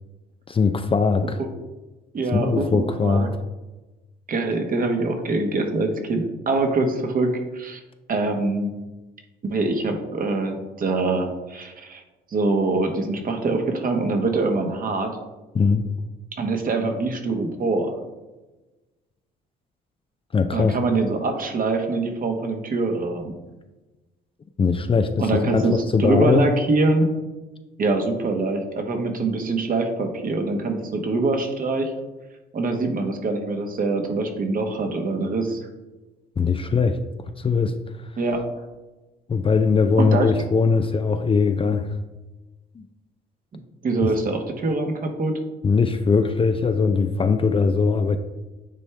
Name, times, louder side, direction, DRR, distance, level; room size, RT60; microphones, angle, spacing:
voice 1, 0.5-1.4 2.3-3.3 15.5-15.8 20.3-20.8 24.6-26.5 36.4-37.0 37.4-37.8 39.3-41.9 42.8-42.9 44.0-44.1 45.6-48.2, left 5 dB, 30° left, 8 dB, 0.5 m, -20 dB
voice 2, 2.1-3.3 4.3-7.3 7.5-7.8 8.1-8.7 9.4-12.0 12.3-15.1 16.3-17.9 20.5-23.3 25.2-25.7 26.0-27.1 27.8-31.9 32.5-35.7 38.2-38.4 40.0-40.3 43.8-45.3, right 3 dB, 45° right, 4 dB, 1.2 m, -24 dB
9.0 x 3.3 x 3.4 m, 1.1 s
supercardioid pair, 65°, 20 cm